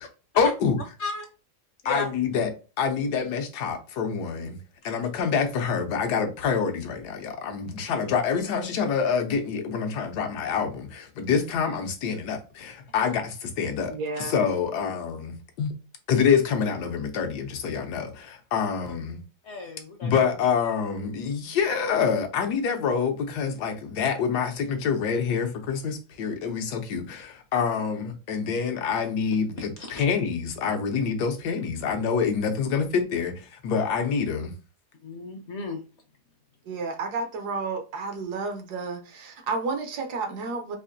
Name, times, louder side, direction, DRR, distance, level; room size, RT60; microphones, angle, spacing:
voice 1, 0.4-0.8 1.8-2.5 2.8-4.6 4.8-13.9 14.2-15.7 16.1-19.2 20.0-34.5, left 6 dB, 80° left, 1.3 m, -26 dB
voice 2, 13.9-14.3 36.7-40.8, right 4 dB, 75° right, 1.3 m, -31 dB
voice 3, 19.4-20.2 29.8-30.0 35.0-35.8, left 3 dB, 60° left, 0.8 m, -34 dB
4.8 x 2.4 x 2.6 m
omnidirectional pair, 1.7 m